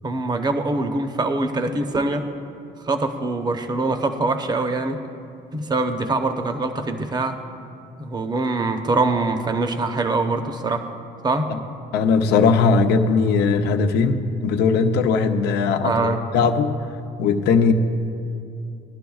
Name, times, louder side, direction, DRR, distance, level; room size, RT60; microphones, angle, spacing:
voice 1, 0.0-2.3 2.8-5.0 5.5-7.4 8.0-10.9 11.2-11.5 15.8-16.2, right 3 dB, 25° right, 7 dB, 0.8 m, -23 dB
voice 2, 11.9-16.8 17.2-17.7, left 5 dB, 80° left, 6 dB, 0.7 m, -19 dB
18.5 x 11.0 x 2.4 m, 2.6 s
cardioid pair, 110°, 17 cm